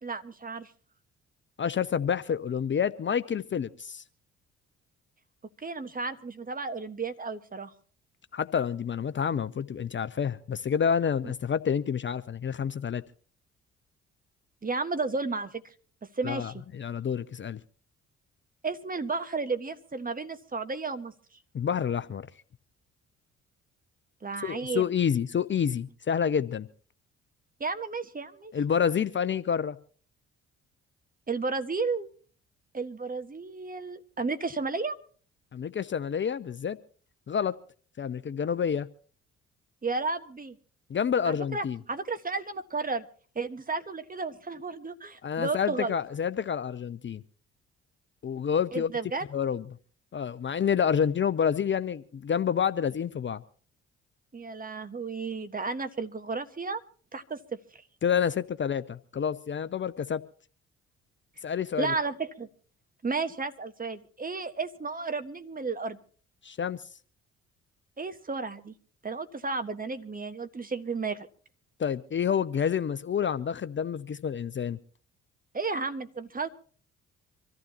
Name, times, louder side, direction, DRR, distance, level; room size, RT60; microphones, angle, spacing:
voice 1, 0.0-0.7 5.6-7.7 11.2-11.3 14.6-15.7 16.1-16.6 18.6-21.1 24.2-24.9 27.6-28.5 31.3-32.1 32.7-35.0 39.8-40.6 41.2-43.0 43.3-46.0 48.7-49.2 54.3-56.8 57.1-57.8 61.8-62.5 63.0-66.0 68.0-68.7 69.0-71.3 75.5-76.5, right 4 dB, 25° right, 1.6 m, -33 dB
voice 2, 1.6-4.0 8.3-13.0 16.2-17.6 21.5-22.3 24.4-26.7 28.5-29.8 35.5-36.8 37.3-37.5 38.0-38.9 40.9-41.8 45.2-47.2 48.2-48.9 49.3-49.6 50.1-53.4 58.0-60.2 61.4-61.9 66.4-66.8 71.8-74.8, left 7 dB, 35° left, 0.8 m, -28 dB
25.5 x 14.5 x 3.0 m
hypercardioid pair, 45°, 33 cm